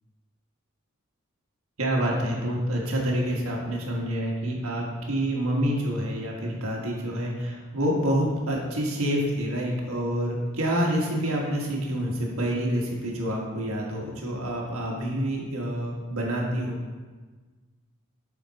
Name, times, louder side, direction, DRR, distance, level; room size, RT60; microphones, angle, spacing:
voice 1, 1.8-16.8, equal, 80° right, -2 dB, 1.5 m, -27 dB
7.4 x 5.2 x 4.1 m, 1.4 s
head